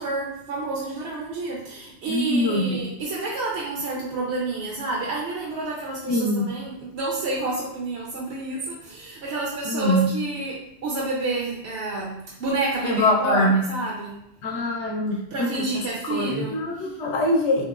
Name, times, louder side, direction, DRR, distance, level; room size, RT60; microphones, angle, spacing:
voice 1, 0.0-14.2 15.3-16.9, right 2 dB, 65° right, -4 dB, 0.8 m, -29 dB
voice 2, 2.1-2.8 6.1-6.5 9.6-10.0 12.8-13.6 14.4-17.6, left 1 dB, 75° left, 1 dB, 0.8 m, -23 dB
2.9 x 2.8 x 2.3 m, 0.79 s
omnidirectional pair, 1.2 m